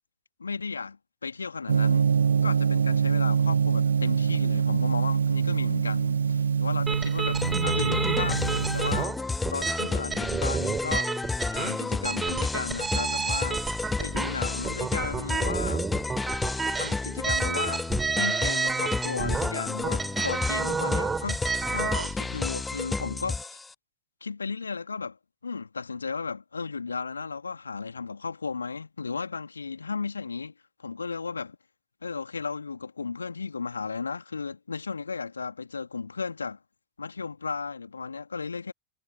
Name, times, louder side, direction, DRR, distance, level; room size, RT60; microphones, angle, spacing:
voice 1, 0.4-2.1 2.4-13.6 14.0-15.9 16.7-17.8 18.2-21.4 21.7-23.6 24.2-25.2 25.4-30.5 30.8-31.6 32.0-36.6 37.0-38.7, left 4 dB, 75° left, 3.1 m, -34 dB
Gong, 1.7-9.0, right 6 dB, 70° right, 0.9 m, -24 dB
sound 1, 6.9-22.2, right 5 dB, 15° right, 5.2 m, -31 dB
sound 2, 7.4-23.7, left 3 dB, 10° left, 0.6 m, -31 dB
figure-of-eight pair, 90°, 0 cm